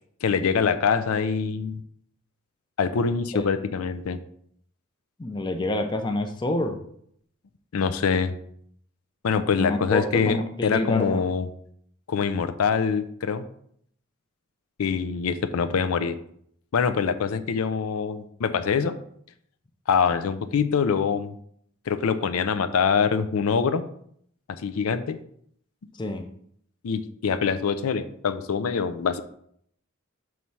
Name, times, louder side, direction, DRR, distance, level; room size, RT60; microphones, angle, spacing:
voice 1, 0.2-1.8 2.8-4.2 7.7-8.3 9.2-10.4 10.6-11.5 12.1-13.4 14.8-16.2 16.7-18.9 19.9-21.3 21.9-23.8 24.6-25.2 26.8-29.2, left 6 dB, 80° left, 11 dB, 0.4 m, -24 dB
voice 2, 5.2-6.8 9.6-11.2 26.0-26.2, left 1 dB, 20° left, 6 dB, 0.5 m, -27 dB
5.8 x 3.1 x 5.4 m, 0.67 s
head